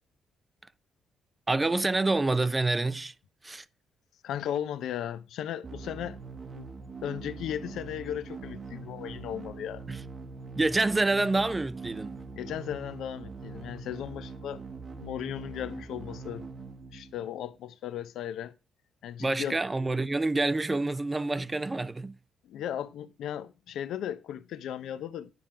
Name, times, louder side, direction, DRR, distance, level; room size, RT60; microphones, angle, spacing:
voice 1, 1.5-3.1 3.4-3.6 9.9-10.0 10.6-12.2 19.2-22.2, right 2 dB, 20° right, 0.5 m, -27 dB
voice 2, 4.2-6.2 6.6-6.7 7.0-9.8 12.3-14.6 15.0-16.5 16.9-18.5 19.0-19.6 22.4-25.3, left 10 dB, 80° left, 0.6 m, -36 dB
sound 1, 5.6-17.6, right 4 dB, 40° right, 1.0 m, -43 dB
9.2 x 3.7 x 5.7 m
cardioid pair, 90°, 0 cm